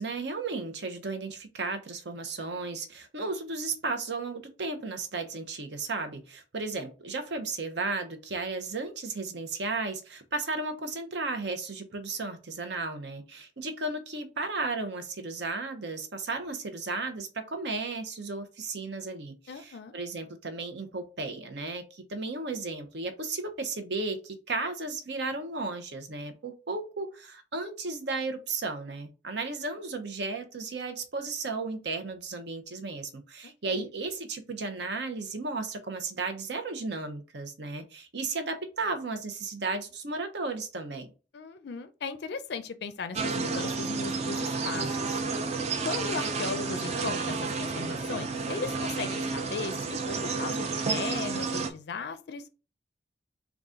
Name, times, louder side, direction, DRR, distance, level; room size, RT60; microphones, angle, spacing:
voice 1, 0.0-41.1, right 3 dB, 65° right, 0.8 m, -34 dB
voice 2, 19.5-19.9 33.4-33.9 41.3-45.2 45.8-52.5, left 4 dB, 65° left, 0.4 m, -37 dB
sound 1, 43.1-51.7, right 4 dB, 35° right, 0.5 m, -31 dB
3.9 x 2.4 x 3.6 m
head